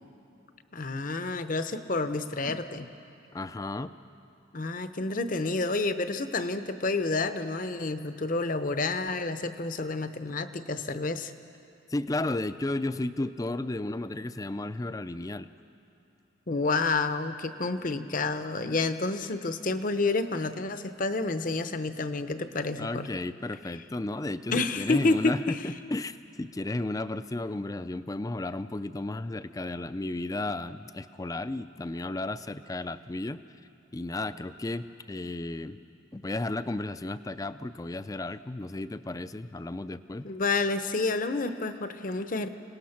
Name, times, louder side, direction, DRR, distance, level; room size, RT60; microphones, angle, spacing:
voice 1, 0.7-2.9 4.5-11.3 16.5-23.1 24.5-25.7 40.2-42.5, left 3 dB, 45° left, 10 dB, 0.8 m, -29 dB
voice 2, 3.3-3.9 11.9-15.5 22.8-33.4 33.9-35.8 36.1-40.3, left 2 dB, 20° left, 13 dB, 0.4 m, -33 dB
28.0 x 18.5 x 5.9 m, 2.9 s
head